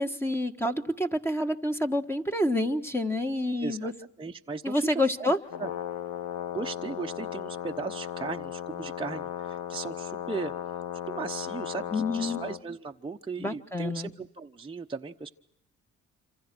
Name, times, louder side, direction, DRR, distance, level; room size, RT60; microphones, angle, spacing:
voice 1, 0.0-3.9 4.6-5.4 11.9-12.4 13.4-14.1, left 1 dB, 10° left, 6 dB, 1.6 m, -28 dB
voice 2, 3.6-3.9 4.2-5.3 5.6-5.7 6.5-10.5 11.1-15.3, right 4 dB, 15° right, 2 dB, 1.0 m, -37 dB
Brass instrument, 5.4-12.6, left 10 dB, 80° left, 1.5 m, -36 dB
27.0 x 27.0 x 6.2 m, 0.76 s
cardioid pair, 90°, 30 cm